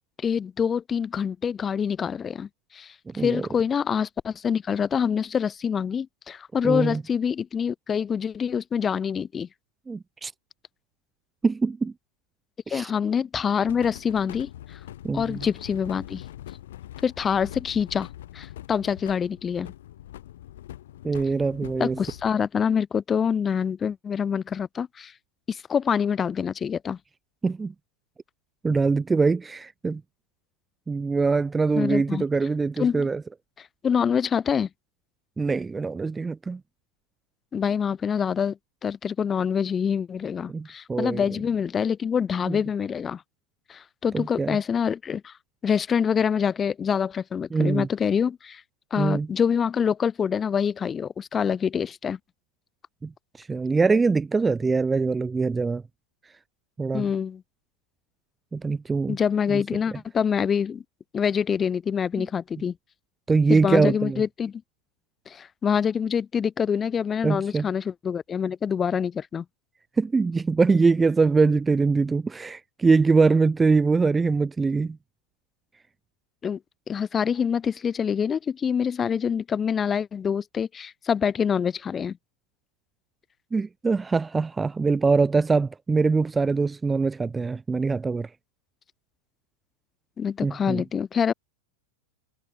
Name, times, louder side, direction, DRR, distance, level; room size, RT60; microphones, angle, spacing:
voice 1, 0.2-9.5 12.7-14.8 15.1-16.2 17.0-18.1 18.3-19.7 21.8-25.1 25.5-27.0 31.7-32.2 32.8-33.1 33.8-34.7 37.5-43.2 43.7-45.3 45.6-48.6 48.9-52.2 56.9-57.4 59.1-60.8 61.1-62.7 63.5-64.5 65.3-69.4 76.4-76.6 76.9-82.2 90.2-91.3, left 7 dB, 20° left, 2.5 m, -26 dB
voice 2, 3.1-3.5 6.6-7.0 9.9-10.3 11.4-11.9 12.7-12.9 15.0-15.4 21.0-22.0 27.4-27.7 28.6-30.0 30.9-33.2 35.4-36.6 40.5-41.3 42.5-42.6 44.1-44.6 47.5-47.9 49.0-49.3 53.0-53.1 53.4-55.8 56.8-57.1 58.5-59.2 59.5-59.6 59.9-60.0 62.2-62.3 63.3-64.2 67.2-67.7 70.0-75.0 83.5-88.3 90.4-90.8, right 4 dB, 10° right, 1.0 m, -23 dB
sound 1, 13.7-22.3, left 13 dB, 60° left, 3.0 m, -43 dB
figure-of-eight pair, 90°, 0 cm